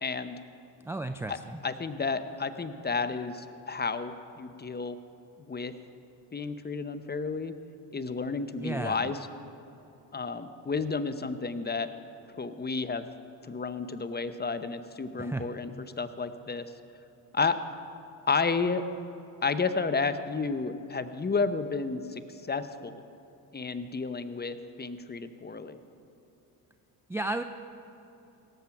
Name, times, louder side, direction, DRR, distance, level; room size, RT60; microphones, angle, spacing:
voice 1, 0.0-0.4 1.3-1.4 1.6-5.0 5.5-5.7 6.3-7.5 7.9-9.2 10.1-11.9 12.4-13.0 13.5-16.7 17.3-17.6 18.3-18.8 19.4-22.2 22.5-22.9 23.5-25.8, left 4 dB, 20° left, 11 dB, 0.8 m, -31 dB
voice 2, 0.8-1.6 8.6-9.1 15.2-15.5 27.1-27.4, right 2 dB, 5° right, 8 dB, 0.4 m, -33 dB
17.5 x 7.6 x 5.8 m, 2.9 s
hypercardioid pair, 60°, 48 cm